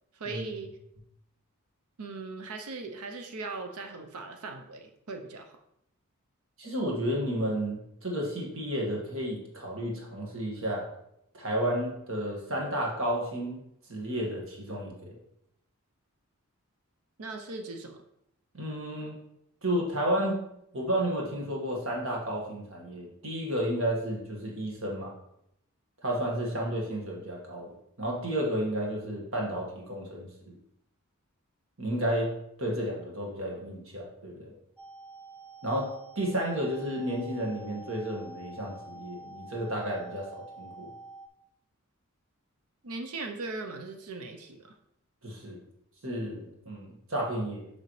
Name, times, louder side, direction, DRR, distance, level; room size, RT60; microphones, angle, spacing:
voice 1, 0.1-0.8 2.0-5.5 17.2-18.0 42.8-44.7, right 3 dB, 85° right, 5 dB, 0.7 m, -39 dB
voice 2, 6.6-10.9 11.3-13.6 13.9-15.2 18.5-19.1 19.6-20.4 20.7-25.1 26.0-30.6 31.8-32.3 32.6-34.5 35.6-40.3 40.6-40.9 45.2-45.6 46.0-47.7, right 1 dB, 60° right, -2 dB, 1.7 m, -32 dB
sound 1, 34.8-41.3, right 1 dB, 5° left, 0.5 m, -47 dB
6.8 x 5.5 x 3.2 m, 0.77 s
head